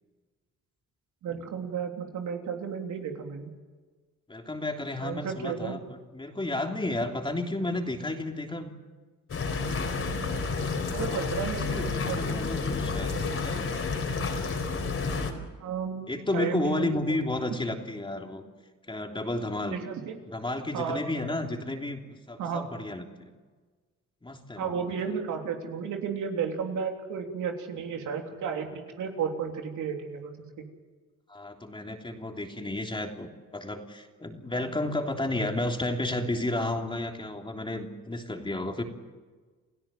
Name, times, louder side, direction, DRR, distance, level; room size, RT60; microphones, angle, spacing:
voice 1, 1.2-3.5 5.0-5.8 10.9-12.5 15.6-17.0 19.7-20.1 20.7-21.0 22.4-22.7 24.6-30.3 30.6-30.7 34.6-34.7, right 6 dB, 75° right, 3 dB, 3.4 m, -33 dB
voice 2, 4.3-8.7 11.7-13.1 13.4-13.8 16.1-18.4 18.9-19.8 20.3-22.0 22.3-23.3 24.2-24.9 31.3-38.8, left 2 dB, 15° left, 2 dB, 3.3 m, -32 dB
sound 1, 9.3-15.3, left 4 dB, 50° left, 4.3 m, -30 dB
29.0 x 16.5 x 7.6 m, 1.4 s
cardioid pair, 90°, 30 cm